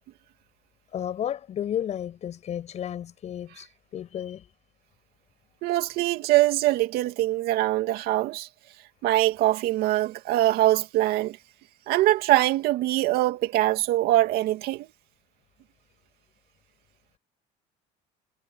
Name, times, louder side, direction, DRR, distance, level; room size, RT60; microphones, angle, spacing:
voice 1, 0.9-3.7 3.9-4.5, left 10 dB, 40° left, 7.7 m, -32 dB
voice 2, 5.6-8.5 9.0-11.4 11.9-14.9, right 15 dB, 70° right, 2.6 m, -23 dB
cardioid pair, 145°, 17 cm